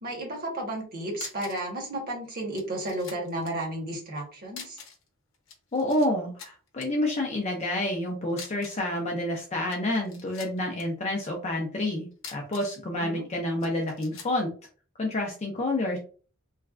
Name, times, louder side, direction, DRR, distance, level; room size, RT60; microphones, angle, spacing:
voice 1, 0.0-4.8 12.9-13.3, right 1 dB, 45° right, 0 dB, 1.2 m, -33 dB
sound 1, 0.8-0.9 1.1-1.7 2.0-2.1 2.5-3.5 4.5-5.1 5.3-6.1 6.4-6.9 8.3-8.9 9.5-10.8 12.1-12.8 13.6-14.4, left 5 dB, 60° left, 0.8 m, -44 dB
voice 2, 5.7-14.5 15.0-16.0, left 1 dB, 30° left, 0 dB, 0.5 m, -29 dB
3.2 x 2.3 x 2.4 m, 0.39 s
head